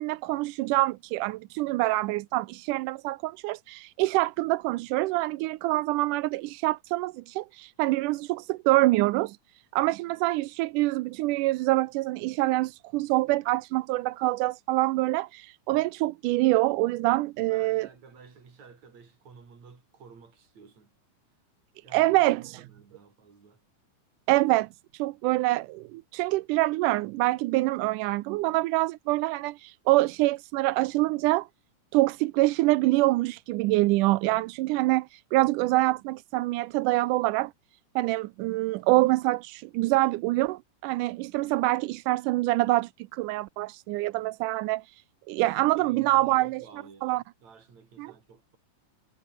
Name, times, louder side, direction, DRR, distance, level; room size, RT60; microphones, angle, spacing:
voice 1, 0.0-9.4 9.7-17.9 21.9-22.7 24.3-31.5 31.9-37.5 38.0-45.0 45.3-46.6 47.0-47.2 48.0-48.1, right 19 dB, 85° right, 2.2 m, -25 dB
voice 2, 17.4-20.9 21.8-22.2 22.5-23.6 45.6-48.6, right 5 dB, 60° right, 5.8 m, -52 dB
omnidirectional pair, 3.6 m